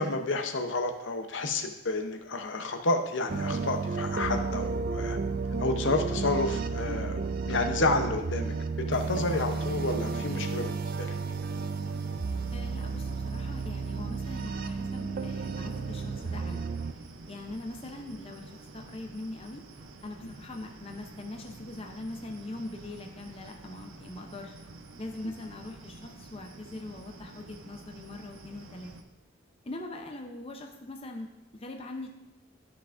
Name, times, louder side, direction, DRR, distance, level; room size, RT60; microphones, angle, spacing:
voice 1, 0.0-5.2 5.6-7.2 7.4-8.5 8.9-11.1 20.2-20.3 25.2-25.3, left 2 dB, 65° left, 5 dB, 0.7 m, -30 dB
sound 1, 3.3-16.9, right 4 dB, 45° right, 0.3 m, -32 dB
sound 2, 9.1-29.0, right 3 dB, 85° right, 0.7 m, -49 dB
voice 2, 12.5-16.7 17.3-18.4 18.7-19.6 20.0-24.6 25.0-28.9 29.6-32.1, left 2 dB, 30° left, 2 dB, 0.6 m, -42 dB
12.5 x 5.8 x 2.5 m, 0.94 s
head